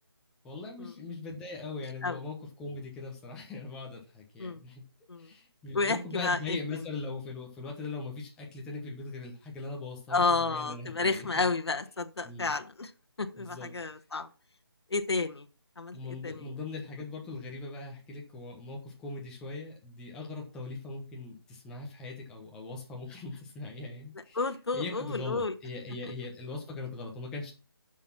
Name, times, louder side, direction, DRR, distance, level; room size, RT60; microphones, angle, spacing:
voice 1, 0.4-4.8 5.2-11.3 12.2-12.5 13.4-13.7 15.9-24.4 24.7-27.5, left 3 dB, 5° left, 0 dB, 1.1 m, -40 dB
voice 2, 5.7-6.6 10.1-12.9 13.2-14.3 14.9-15.5 15.8-15.9 16.2-16.5 24.3-25.5 26.0-26.1, left 3 dB, 80° left, 7 dB, 1.2 m, -31 dB
8.6 x 6.3 x 5.9 m, 0.33 s
figure-of-eight pair, 170°, 13 cm